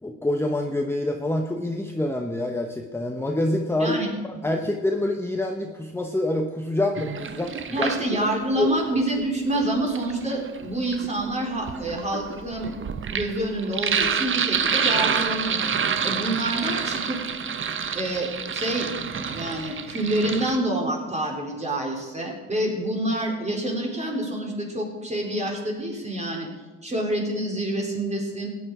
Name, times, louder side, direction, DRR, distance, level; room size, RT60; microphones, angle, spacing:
voice 1, 0.0-4.0 4.3-7.9 8.2-8.3 8.6-8.7, left 1 dB, 10° left, 3 dB, 1.0 m, -26 dB
Sink (filling or washing), 7.0-8.5 9.6-20.6, right 6 dB, 40° right, 0.9 m, -28 dB
voice 2, 7.7-12.8 13.1-15.7 16.0-17.2 17.9-18.9 19.2-26.5 26.8-28.5, right 1 dB, 20° right, -1 dB, 4.0 m, -27 dB
16.0 x 9.6 x 4.8 m, 1.3 s
cardioid pair, 90°, 30 cm